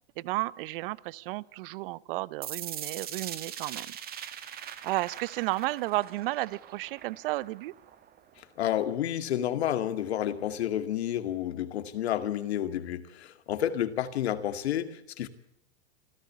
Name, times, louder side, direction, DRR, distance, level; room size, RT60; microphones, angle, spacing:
voice 1, 0.2-3.9 4.8-7.7, right 19 dB, 55° right, 22 dB, 0.9 m, -33 dB
sound 1, 2.4-8.4, right 10 dB, 30° right, 1.7 m, -41 dB
voice 2, 8.6-15.3, left 11 dB, 75° left, 10 dB, 2.2 m, -30 dB
26.5 x 14.5 x 8.4 m, 0.77 s
hypercardioid pair, 120°, 32 cm